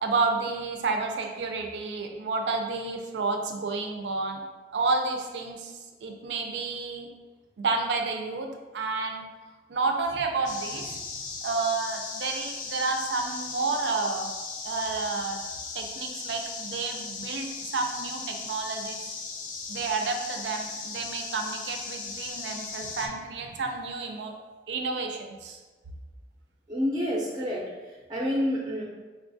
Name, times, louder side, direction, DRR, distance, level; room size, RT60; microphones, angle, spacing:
voice 1, 0.0-4.4 4.7-7.1 7.6-8.5 8.7-9.2 9.7-11.0 11.4-14.3 14.6-15.4 15.7-19.2 19.7-24.3 24.7-25.6, right 4 dB, 80° right, 3 dB, 0.4 m, -30 dB
sound 1, 10.5-23.1, left 4 dB, 45° left, 0.4 m, -37 dB
voice 2, 26.7-27.6 28.1-28.8, equal, 20° right, -4 dB, 0.4 m, -28 dB
4.1 x 2.3 x 2.5 m, 1.3 s
head